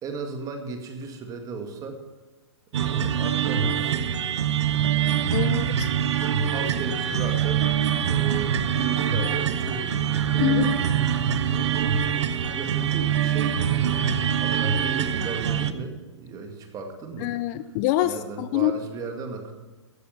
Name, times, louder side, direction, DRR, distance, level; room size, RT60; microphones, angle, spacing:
voice 1, 0.0-2.0 2.7-4.1 6.4-7.7 8.1-10.7 11.5-11.9 12.5-17.4 18.0-19.5, right 4 dB, 25° right, 4 dB, 2.0 m, -35 dB
sound 1, 2.7-15.7, right 9 dB, 70° right, 0.9 m, -24 dB
voice 2, 5.3-5.9 10.4-10.7 17.2-18.7, left 13 dB, 35° left, 14 dB, 0.5 m, -25 dB
13.5 x 8.3 x 5.8 m, 1.2 s
hypercardioid pair, 135°, 15 cm